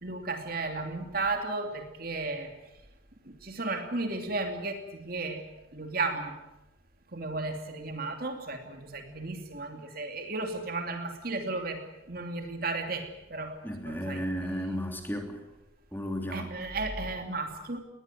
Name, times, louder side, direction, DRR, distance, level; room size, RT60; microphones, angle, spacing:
voice 1, 0.0-2.5 3.4-5.4 5.7-6.3 7.1-11.8 12.1-13.6 13.9-14.2 16.3-17.8, right 3 dB, 50° right, 5 dB, 2.8 m, -34 dB
voice 2, 13.6-15.4 15.9-16.5, equal, 10° left, 3 dB, 3.1 m, -34 dB
20.5 x 20.5 x 9.5 m, 0.96 s
head